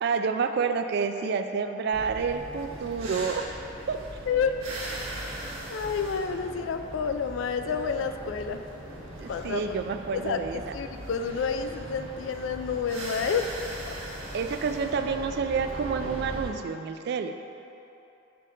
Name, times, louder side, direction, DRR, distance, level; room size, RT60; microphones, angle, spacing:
voice 1, 0.0-3.5 3.9-4.0 9.2-10.7 14.3-17.3, right 5 dB, 55° right, 8 dB, 0.3 m, -29 dB
sound 1, 1.9-16.5, right 1 dB, 90° right, 1.4 m, -39 dB
voice 2, 4.3-4.6 5.7-8.6 9.3-9.6 10.1-13.5 13.9-14.0, left 6 dB, 65° left, 8 dB, 0.3 m, -29 dB
5.8 x 3.7 x 5.0 m, 2.8 s
head